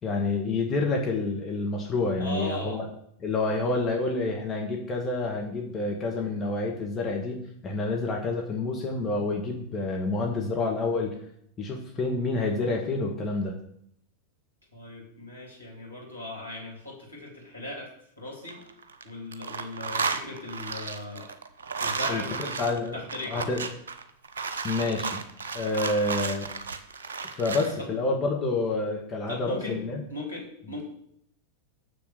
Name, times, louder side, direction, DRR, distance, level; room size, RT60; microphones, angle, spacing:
voice 1, 0.0-2.9 3.2-11.2 11.6-13.6 22.1-22.2 22.6-23.0 23.3-23.7 24.6-25.2 25.5-26.5 27.2-30.0, left 3 dB, 20° left, 0 dB, 1.9 m, -28 dB
voice 2, 2.2-2.8 3.8-4.0 14.7-17.9 18.2-18.6 19.0-21.3 21.8-22.6 22.9-23.5 27.8-27.9 29.3-29.8 30.1-30.9, left 2 dB, 85° left, -3 dB, 3.6 m, -38 dB
sound 1, 18.3-19.0 19.3-27.8, right 5 dB, 65° right, 0.9 m, -33 dB
7.2 x 6.9 x 6.8 m, 0.71 s
figure-of-eight pair, 90°, 0 cm